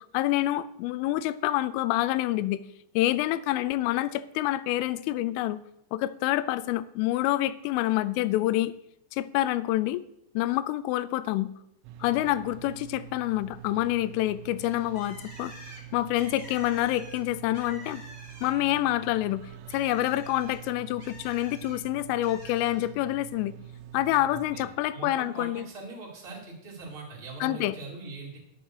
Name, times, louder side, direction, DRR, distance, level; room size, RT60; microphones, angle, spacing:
voice 1, 0.1-2.6 3.0-5.6 5.9-8.7 9.1-10.0 10.4-11.5 12.0-15.5 15.9-18.0 18.4-19.4 19.7-23.5 23.9-25.7 27.4-27.8, left 15 dB, 85° left, 14 dB, 3.0 m, -27 dB
sound 1, 11.8-24.7, right 10 dB, 80° right, 3.0 m, -45 dB
Bird, 14.9-18.8 19.1-21.8 22.2-22.9, equal, 35° right, 1.0 m, -48 dB
voice 2, 24.3-28.4, right 3 dB, 15° right, -3 dB, 1.9 m, -42 dB
12.5 x 6.1 x 6.3 m, 0.78 s
omnidirectional pair, 5.7 m